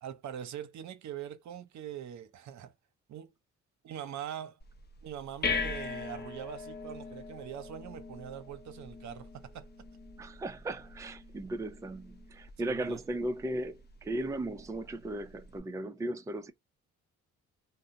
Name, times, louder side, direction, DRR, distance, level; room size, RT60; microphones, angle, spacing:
voice 1, 0.0-2.7 3.1-3.3 3.8-4.6 5.0-9.7 12.6-13.0, right 9 dB, 65° right, 0.7 m, -42 dB
sound 1, 4.6-15.6, left 5 dB, 35° left, 0.7 m, -41 dB
voice 2, 10.2-16.5, right 1 dB, 10° right, 0.4 m, -36 dB
2.7 x 2.1 x 3.8 m
cardioid pair, 90°, 30 cm